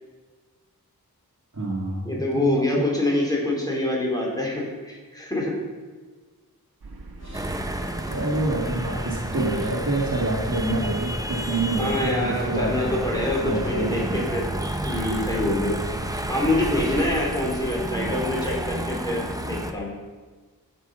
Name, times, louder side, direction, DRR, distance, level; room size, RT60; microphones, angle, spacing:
voice 1, 1.5-2.9 7.2-7.5 8.1-13.0 13.4-14.2, right 2 dB, 50° right, -3 dB, 2.3 m, -27 dB
voice 2, 2.0-5.5 11.8-14.5 14.9-15.8 16.3-19.9, left 1 dB, 10° left, -3 dB, 4.4 m, -25 dB
sound 1, 6.8-18.2, right 2 dB, 75° right, 1.8 m, -39 dB
sound 2, 7.2-17.5, right 1 dB, 40° left, 4.2 m, -42 dB
sound 3, 7.3-19.7, right 1 dB, 10° right, 0.9 m, -31 dB
12.5 x 7.6 x 5.7 m, 1.4 s
wide cardioid pair, 55°, 37 cm